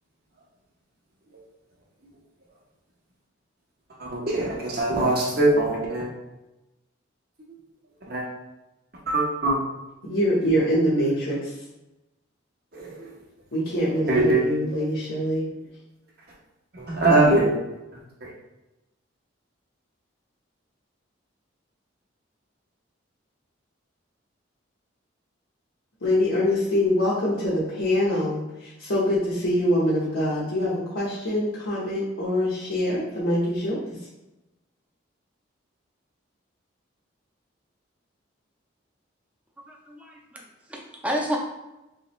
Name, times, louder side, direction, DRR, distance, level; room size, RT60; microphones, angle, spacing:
voice 1, 4.0-6.1 8.1-8.2 9.1-9.6 12.7-13.1 14.1-14.4 16.7-17.5 18.2-18.3, right 2 dB, 50° right, -3 dB, 1.0 m, -22 dB
voice 2, 10.0-11.5 13.5-15.4 26.0-34.0, left 1 dB, 80° left, -9 dB, 1.0 m, -24 dB
voice 3, 39.7-40.4 40.7-41.4, equal, 5° right, -1 dB, 0.5 m, -30 dB
3.7 x 3.1 x 3.0 m, 0.99 s
head